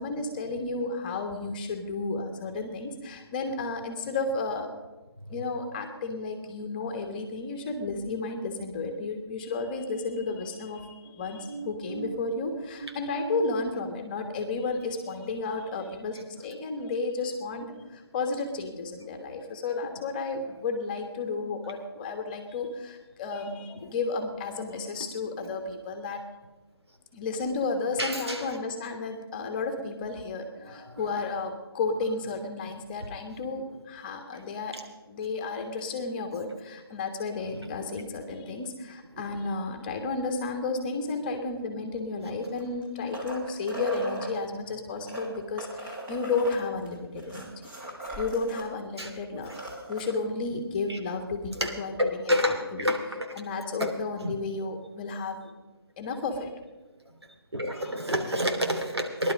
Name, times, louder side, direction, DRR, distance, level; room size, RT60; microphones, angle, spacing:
voice 1, 0.0-4.7 5.3-26.2 27.1-34.8 35.1-47.7 48.2-49.5 49.9-52.9 53.3-55.5 56.0-56.5 57.7-57.8, left 3 dB, 20° left, 6 dB, 1.4 m, -32 dB
voice 2, 11.5-12.1 12.8-13.3 28.0-28.4 30.6-31.0 49.0-49.1 50.9-51.0 51.6-51.7 52.0-53.4 53.8-53.9 54.2-54.3 57.5-59.3, equal, 90° right, 3 dB, 2.8 m, -29 dB
sound 1, 42.4-44.3 45.0-48.7 49.0-49.1 49.4-50.1 51.6-51.7, right 1 dB, 10° right, 1.6 m, -38 dB
17.5 x 11.5 x 5.3 m, 1.1 s
figure-of-eight pair, 155°, 13 cm